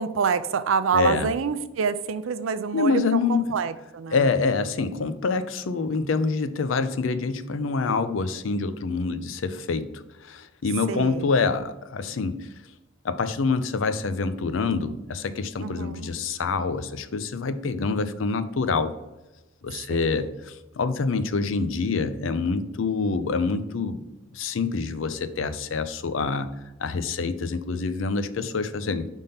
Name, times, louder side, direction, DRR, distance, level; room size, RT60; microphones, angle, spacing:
voice 1, 0.0-4.3 10.9-11.5 15.6-16.1 19.9-20.3, right 6 dB, 90° right, 13 dB, 0.4 m, -27 dB
voice 2, 0.9-1.3 2.7-3.4 4.1-12.5 13.0-18.9 19.6-24.0 24.3-26.5 26.8-29.1, left 4 dB, 80° left, 12 dB, 0.5 m, -26 dB
5.3 x 3.6 x 5.7 m, 1.0 s
head